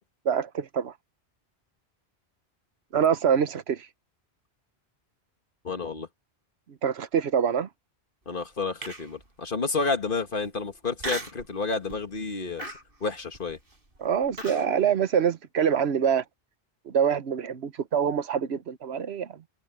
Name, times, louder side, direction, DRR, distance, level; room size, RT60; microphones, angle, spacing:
voice 1, 0.2-0.9 2.9-3.9 6.7-7.7 14.0-16.2 16.8-19.4, right 7 dB, 75° right, 1.1 m, -25 dB
voice 2, 5.6-6.1 8.3-12.7 13.0-13.6, left 4 dB, 55° left, 1.8 m, -30 dB
Human voice, 8.8-9.2 9.8-9.9 11.0-11.5 11.9-12.2 12.6-14.7, right 1 dB, 55° right, 4.8 m, -36 dB
omnidirectional pair, 1.1 m